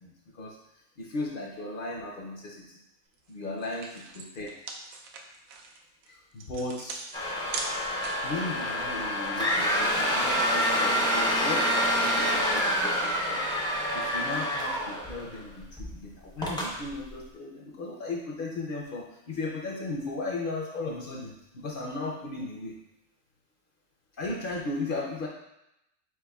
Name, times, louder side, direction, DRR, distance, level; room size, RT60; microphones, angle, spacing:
voice 1, 0.0-0.6 1.0-2.6 3.3-3.9 4.4-4.5 6.1-7.0 8.2-13.4 13.9-22.7 24.2-25.3, left 2 dB, 55° left, -2 dB, 0.6 m, -36 dB
sound 1, 3.2-3.3 3.6-8.4, right 4 dB, 80° right, 1.0 m, -40 dB
sound 2, 7.1-15.4 15.8-15.9 16.4-16.7, equal, 5° left, 0.3 m, -27 dB
4.6 x 4.4 x 2.3 m, 0.86 s
omnidirectional pair, 1.4 m